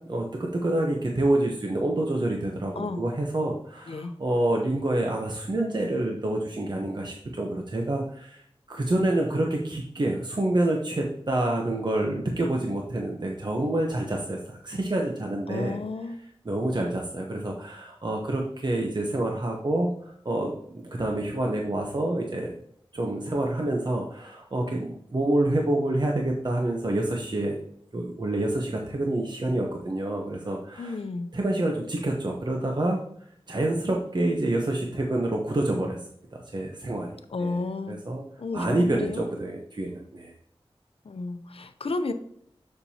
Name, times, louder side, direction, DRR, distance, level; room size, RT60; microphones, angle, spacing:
voice 1, 0.1-15.8 16.4-22.5 22.9-27.6 27.9-31.0 31.3-33.0 33.5-36.0 36.3-37.1 37.4-37.6 37.9-38.2 38.5-40.3, right 1 dB, 50° right, 0 dB, 0.9 m, -27 dB
voice 2, 15.5-16.2 30.8-31.3 37.3-38.0 38.4-39.2 41.0-42.1, left 3 dB, 75° left, 9 dB, 0.6 m, -32 dB
7.1 x 6.7 x 2.8 m, 0.67 s
wide cardioid pair, 65°, 10 cm